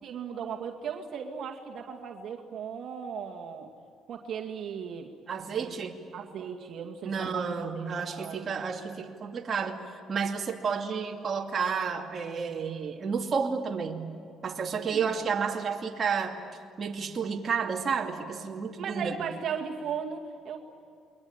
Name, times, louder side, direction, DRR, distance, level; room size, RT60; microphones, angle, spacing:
voice 1, 0.0-3.7 4.1-5.1 5.6-5.7 6.1-8.5 14.8-15.3 18.8-20.6, right 7 dB, 60° right, 1 dB, 2.3 m, -37 dB
voice 2, 5.3-6.0 7.0-14.1 14.4-16.4 16.8-19.2, right 6 dB, 40° right, 2 dB, 2.5 m, -31 dB
29.0 x 22.5 x 8.9 m, 2.4 s
cardioid pair, 95°, 0 cm